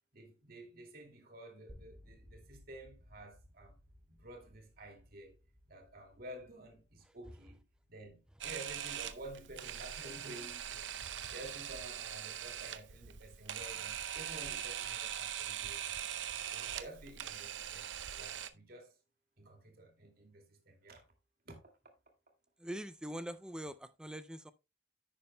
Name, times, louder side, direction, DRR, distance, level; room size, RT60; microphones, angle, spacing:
voice 1, 0.1-3.8 4.1-5.3 5.7-7.6 7.9-10.8 11.3-16.1 16.5-19.0 19.4-21.0 21.5-21.6, right 1 dB, 55° right, 2.4 m, -51 dB
sound 1, 1.7-11.7, left 1 dB, 20° right, 1.9 m, -62 dB
Camera, 8.4-18.5, right 10 dB, 85° right, 0.7 m, -42 dB
voice 2, 22.6-24.5, equal, 5° right, 0.3 m, -43 dB
11.0 x 8.5 x 2.2 m
head